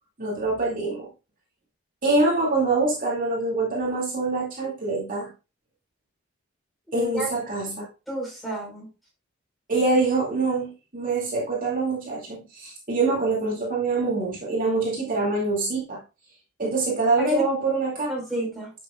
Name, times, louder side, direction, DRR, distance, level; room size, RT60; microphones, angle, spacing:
voice 1, 0.2-1.1 2.0-5.3 6.9-7.8 9.7-16.0 16.6-18.1, right 3 dB, 45° right, 2.5 m, -25 dB
voice 2, 6.9-7.3 8.1-8.9 17.2-17.4 18.1-18.7, left 1 dB, ahead, 4.6 m, -29 dB
9.9 x 6.7 x 2.4 m
head